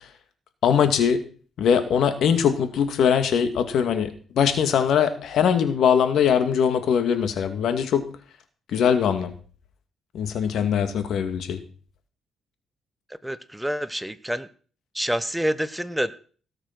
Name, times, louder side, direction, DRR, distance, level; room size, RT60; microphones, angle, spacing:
voice 1, 0.6-1.2 1.6-4.1 4.4-8.0 8.7-9.3 10.1-11.6, left 7 dB, 70° left, 8 dB, 2.2 m, -21 dB
voice 2, 13.2-14.5 14.9-16.1, equal, 5° right, 14 dB, 0.9 m, -27 dB
18.5 x 6.8 x 6.0 m, 0.42 s
cardioid pair, 90°, 0 cm